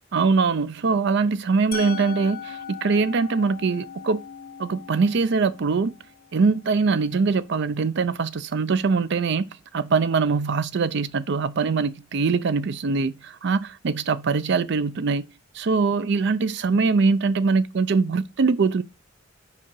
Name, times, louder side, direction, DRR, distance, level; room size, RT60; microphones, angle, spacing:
voice 1, 0.1-4.2 4.6-5.9 6.3-15.2 15.5-18.8, right 4 dB, 60° right, 0.5 m, -22 dB
Musical instrument, 1.7-7.6, left 7 dB, 50° left, 1.4 m, -40 dB
7.2 x 4.9 x 4.5 m
head